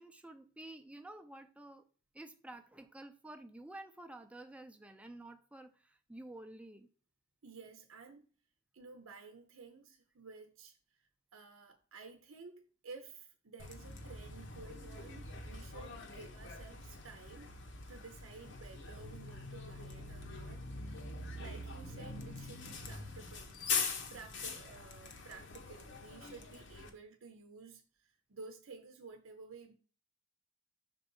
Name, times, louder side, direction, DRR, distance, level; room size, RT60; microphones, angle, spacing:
voice 1, 0.0-1.8 2.1-6.9, right 1 dB, 5° right, 0.6 m, -51 dB
voice 2, 7.4-8.2 8.7-17.5 17.9-21.0 21.3-23.5 23.8-29.7, right 4 dB, 75° right, 0.8 m, -53 dB
Bus, 13.6-26.9, left 4 dB, 60° left, 1.0 m, -43 dB
6.0 x 4.0 x 5.4 m
head